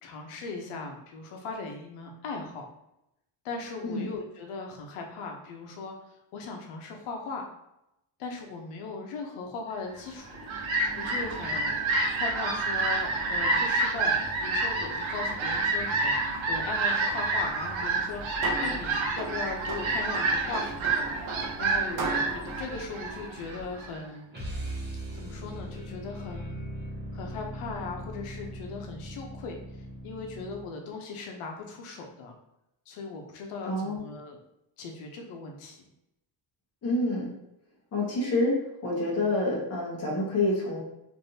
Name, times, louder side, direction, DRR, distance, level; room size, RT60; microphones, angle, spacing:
voice 1, 0.0-2.7 3.4-7.4 8.2-10.4 11.0-11.8 12.1-21.1 21.6-22.0 22.3-24.4 25.1-26.7 27.1-32.4 32.9-34.4 34.8-35.8, left 4 dB, 85° left, 2 dB, 0.8 m, -38 dB
Fowl, 10.1-24.0, right 3 dB, 70° right, 0.8 m, -29 dB
sound 1, 18.0-23.8, right 3 dB, 40° right, 0.5 m, -38 dB
sound 2, 24.3-30.8, right 1 dB, 20° right, 1.0 m, -39 dB
voice 2, 33.7-34.0 36.8-37.3 37.9-38.5 38.8-40.8, left 2 dB, 30° left, -4 dB, 0.9 m, -27 dB
3.3 x 2.6 x 2.7 m, 0.85 s
cardioid pair, 175°, 49 cm